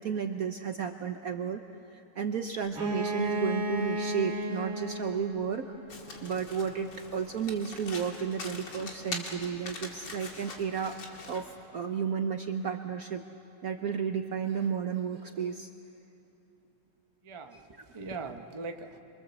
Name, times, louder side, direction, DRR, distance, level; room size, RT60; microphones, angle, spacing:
voice 1, 0.0-1.6 1.9-5.7 6.2-11.0 11.3-13.2 13.6-15.7 17.5-17.6, right 7 dB, 60° right, 5 dB, 1.0 m, -33 dB
Bowed string instrument, 2.7-6.4, equal, 75° right, 3.5 m, -34 dB
Domestic sounds home sounds, 5.9-11.5, left 3 dB, 55° left, 2.5 m, -43 dB
voice 2, 17.2-19.0, right 3 dB, 25° right, 4 dB, 0.6 m, -41 dB
27.5 x 23.5 x 7.1 m, 2.9 s
omnidirectional pair, 2.3 m